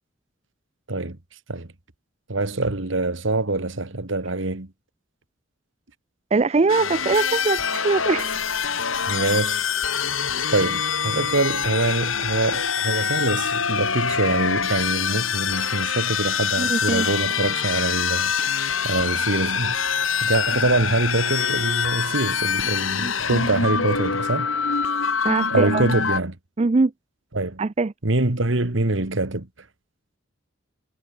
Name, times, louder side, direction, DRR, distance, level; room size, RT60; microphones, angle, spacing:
voice 1, 2.3-4.7 9.1-9.7 10.5-18.3 18.8-19.8 20.2-24.5 25.5-26.4 27.3-27.6 28.0-29.5, right 2 dB, 70° right, 1.8 m, -24 dB
voice 2, 6.3-8.4 16.6-17.1 23.0-23.1 25.2-25.8 26.6-26.9 27.6-27.9, right 3 dB, 30° right, 0.4 m, -22 dB
sound 1, 6.7-26.2, left 6 dB, 85° left, 3.8 m, -25 dB
head